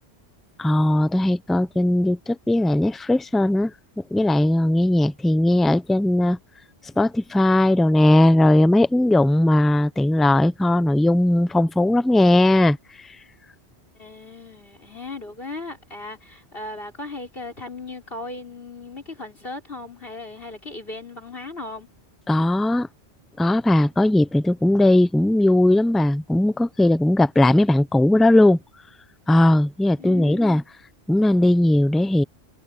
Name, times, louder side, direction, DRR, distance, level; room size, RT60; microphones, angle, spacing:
voice 1, 0.6-3.7 4.1-6.4 7.0-12.8 22.3-22.9 23.4-28.6 29.3-30.6 31.1-32.2, left 1 dB, ahead, 0.6 m, -18 dB
voice 2, 14.0-21.9 30.0-30.5, left 2 dB, 60° left, 5.4 m, -37 dB
omnidirectional pair, 1.1 m